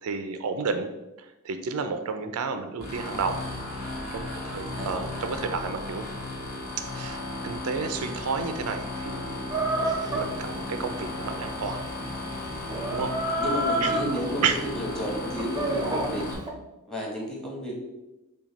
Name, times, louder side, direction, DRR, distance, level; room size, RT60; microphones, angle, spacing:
voice 1, 0.0-0.9 1.2-3.4 4.1-6.1 6.9-9.4 10.1-11.8 12.9-13.1 13.8-13.9 14.4-14.6, right 5 dB, 80° right, 8 dB, 0.4 m, -31 dB
sound 1, 2.8-16.3, left 2 dB, 45° left, 1.5 m, -35 dB
Chicken rooster, 9.5-16.5, right 1 dB, 20° right, 0.6 m, -31 dB
voice 2, 13.4-14.4 14.7-16.3 16.9-17.7, equal, ahead, -2 dB, 1.1 m, -32 dB
5.7 x 2.3 x 4.0 m, 1.0 s
head